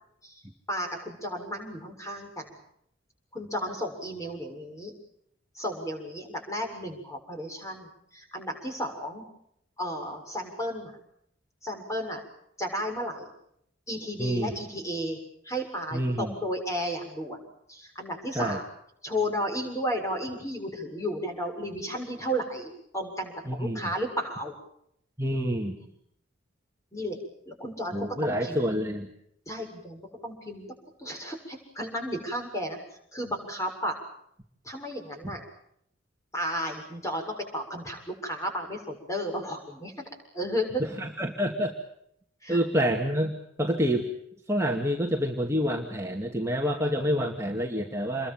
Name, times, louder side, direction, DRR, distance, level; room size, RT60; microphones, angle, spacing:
voice 1, 0.7-2.6 3.3-4.9 5.5-9.2 9.8-11.0 11.6-12.2 12.6-13.2 13.9-15.2 15.4-17.4 17.7-18.7 19.0-24.5 26.9-27.2 27.5-28.6 29.5-30.7 31.0-32.8 33.1-34.0 34.6-35.4 36.3-39.9 40.3-40.8 42.4-42.6, equal, 15° left, 3 dB, 7.1 m, -33 dB
voice 2, 14.2-14.5 15.9-16.3 18.3-18.6 23.5-23.8 25.2-25.8 27.9-29.1 41.0-41.7 42.5-44.1 44.5-48.3, equal, 15° right, 0 dB, 2.3 m, -27 dB
28.5 x 22.5 x 7.4 m, 0.73 s
head